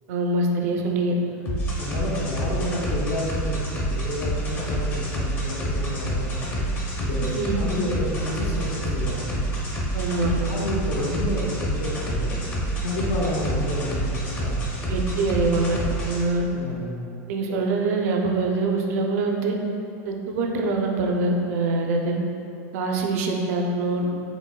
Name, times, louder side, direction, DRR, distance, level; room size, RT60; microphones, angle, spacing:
voice 1, 0.1-1.1 7.2-7.6 9.9-10.5 14.9-16.4 17.3-19.6 20.0-22.2 22.7-24.1, right 3 dB, 70° right, 2 dB, 0.5 m, -24 dB
sound 1, 1.5-16.2, right 1 dB, 25° left, 0.7 m, -28 dB
voice 2, 1.8-9.3 10.5-12.4 12.8-14.7 16.5-17.0, left 1 dB, 80° left, -4 dB, 1.0 m, -30 dB
5.0 x 3.4 x 2.2 m, 2.7 s
supercardioid pair, 145°, 8 cm